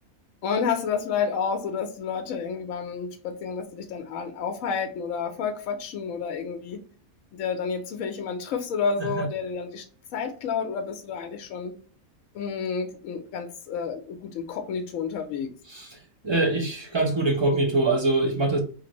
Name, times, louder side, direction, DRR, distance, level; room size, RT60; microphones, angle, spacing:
voice 1, 0.4-6.8 7.3-9.9 10.1-11.8 12.3-15.5, left 6 dB, 70° left, 0.9 m, -30 dB
voice 2, 16.2-18.6, right 2 dB, 30° right, 0.5 m, -23 dB
3.2 x 2.5 x 2.9 m
omnidirectional pair, 1.5 m